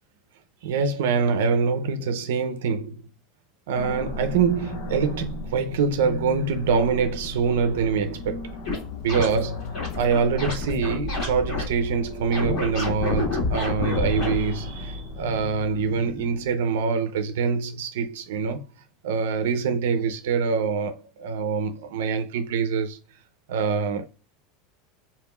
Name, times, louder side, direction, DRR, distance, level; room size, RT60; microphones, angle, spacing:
voice 1, 0.6-3.0 3.7-8.4 9.0-9.6 10.0-18.6 19.0-23.0 23.5-24.1, right 5 dB, 85° right, 0.6 m, -25 dB
sound 1, 3.7-16.8, left 2 dB, 50° left, 0.7 m, -36 dB
sound 2, 8.6-8.8 9.1-9.4 9.7-11.6 12.3-14.3, left 2 dB, 30° left, 1.8 m, -28 dB
4.8 x 2.9 x 2.3 m
supercardioid pair, 175°, 0 cm